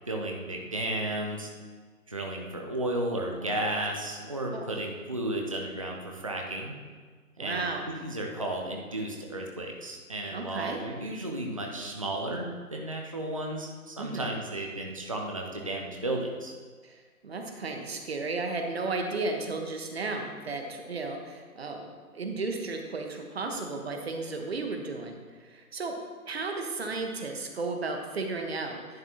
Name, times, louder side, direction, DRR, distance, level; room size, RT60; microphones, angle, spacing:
voice 1, 0.1-1.5 2.1-6.7 7.4-16.5, right 1 dB, 25° right, 0 dB, 0.6 m, -33 dB
voice 2, 7.4-7.8 10.3-10.8 14.0-14.3 16.8-26.0 26.3-29.0, right 3 dB, 45° right, 3 dB, 1.3 m, -34 dB
11.0 x 8.9 x 2.9 m, 1.5 s
figure-of-eight pair, 155°, 44 cm